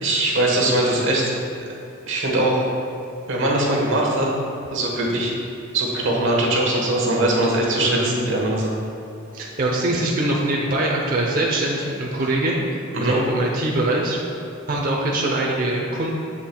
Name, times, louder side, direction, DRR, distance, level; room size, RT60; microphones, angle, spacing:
voice 1, 0.0-1.3 2.1-2.7 3.3-4.3 4.7-5.3 5.7-8.8 12.9-13.2, right 1 dB, 65° right, -2 dB, 1.3 m, -21 dB
voice 2, 7.8-8.1 9.3-14.2 14.7-16.1, right 1 dB, 45° right, -2 dB, 0.7 m, -23 dB
7.5 x 7.3 x 2.3 m, 2.8 s
head